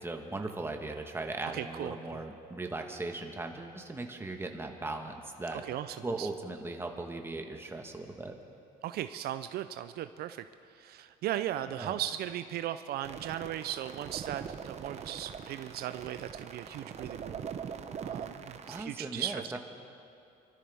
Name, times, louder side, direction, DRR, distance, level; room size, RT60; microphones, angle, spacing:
voice 1, 0.0-5.6 6.0-8.3 11.7-12.0 18.7-19.6, right 2 dB, 15° right, 3 dB, 1.3 m, -38 dB
voice 2, 1.5-2.2 5.5-6.3 8.8-10.4 10.7-17.4 18.0-19.6, right 12 dB, 70° right, 11 dB, 0.5 m, -37 dB
sound 1, 13.0-18.8, right 7 dB, 40° right, 0.8 m, -42 dB
26.0 x 13.0 x 3.5 m, 2.6 s
cardioid pair, 110°, 17 cm